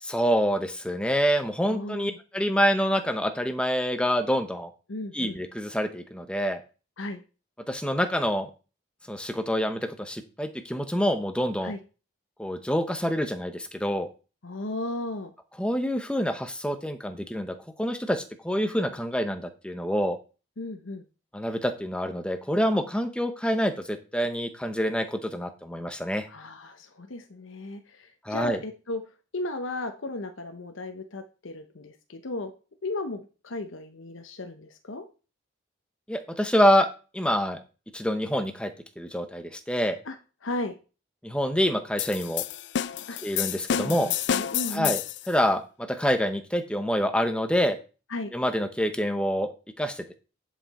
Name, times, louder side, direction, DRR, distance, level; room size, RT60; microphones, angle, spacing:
voice 1, 0.0-4.7 5.1-6.6 7.7-8.5 9.1-11.7 12.4-14.1 15.6-20.2 21.3-26.3 28.2-28.6 36.1-36.9 37.1-37.6 37.9-38.7 39.0-40.0 41.2-42.4 43.2-44.1 44.7-45.0 45.3-47.8 48.3-49.5 49.8-50.1, equal, 5° left, 8 dB, 0.8 m, -26 dB
voice 2, 1.7-2.2 4.9-5.4 7.0-7.2 11.6-11.8 14.4-15.3 20.6-21.1 26.3-29.0 29.3-32.5 32.8-35.0 40.0-40.2 40.4-40.7 43.1-43.2 43.7-45.0 48.1-48.3, left 2 dB, 75° left, 5 dB, 0.9 m, -35 dB
sound 1, 42.0-45.3, left 10 dB, 60° left, 0.4 m, -29 dB
10.0 x 5.7 x 4.2 m, 0.34 s
head